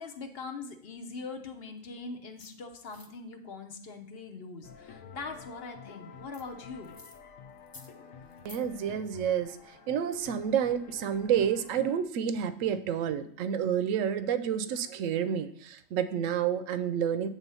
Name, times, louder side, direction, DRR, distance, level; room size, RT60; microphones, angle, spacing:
voice 1, 0.0-6.9, left 4 dB, 50° left, 4 dB, 0.9 m, -42 dB
sound 1, 2.4-2.5 2.9-3.1 6.3-6.4 6.8-7.2 7.6-7.9 8.3-8.6, left 3 dB, 30° left, 0.4 m, -50 dB
sound 2, 4.6-12.0, left 6 dB, 75° left, 1.0 m, -50 dB
voice 2, 8.4-9.6 9.9-17.3, right 8 dB, 75° right, 12 dB, 0.9 m, -29 dB
8.2 x 3.6 x 5.5 m, 0.64 s
omnidirectional pair, 1.4 m